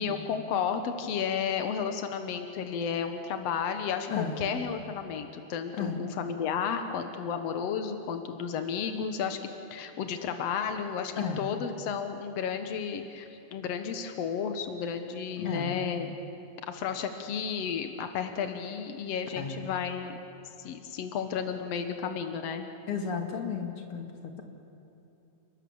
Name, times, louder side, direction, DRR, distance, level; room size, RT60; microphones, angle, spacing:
voice 1, 0.0-9.4 9.7-16.1 16.7-20.2 20.6-22.7, left 7 dB, 80° left, 7 dB, 1.4 m, -32 dB
voice 2, 4.1-4.4 5.8-6.1 11.2-11.5 15.4-15.8 19.3-19.6 22.9-24.4, left 6 dB, 40° left, 3 dB, 2.4 m, -33 dB
30.0 x 20.0 x 7.1 m, 2.9 s
omnidirectional pair, 4.6 m